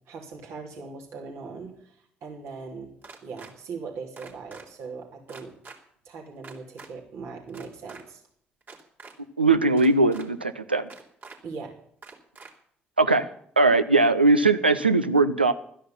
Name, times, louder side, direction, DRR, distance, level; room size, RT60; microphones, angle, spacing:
voice 1, 0.1-2.9 3.2-5.5 6.0-8.2 11.4-11.8, right 4 dB, 60° right, 0 dB, 3.3 m, -40 dB
sound 1, 3.0-3.5 4.2-4.6 5.3-5.8 6.4-6.9 7.5-8.0 8.6-9.1 9.8-10.3 10.9-11.4 12.0-12.5, right 4 dB, 35° right, 3.4 m, -45 dB
voice 2, 9.4-10.9 13.0-13.3 13.6-15.5, right 3 dB, 85° right, 12 dB, 0.6 m, -20 dB
13.5 x 10.0 x 7.2 m, 0.64 s
figure-of-eight pair, 45°, 5 cm